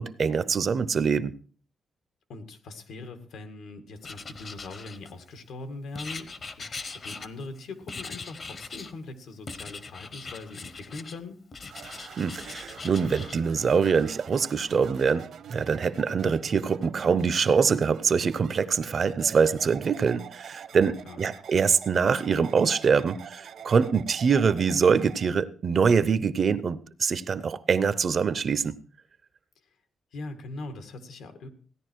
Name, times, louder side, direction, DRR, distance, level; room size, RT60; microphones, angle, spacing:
voice 1, 0.0-1.3 12.2-28.7, right 6 dB, 40° right, 0.6 m, -24 dB
voice 2, 2.3-11.4 20.8-21.2 30.1-31.5, left 3 dB, 85° left, 2.0 m, -41 dB
Writing, 4.0-5.4 5.9-7.6 7.9-8.9 9.5-11.2 11.5-13.4, left 4 dB, 35° left, 0.8 m, -40 dB
sound 1, 11.7-25.3, right 8 dB, 70° right, 1.0 m, -45 dB
16.0 x 10.5 x 4.6 m
wide cardioid pair, 165°, 0 cm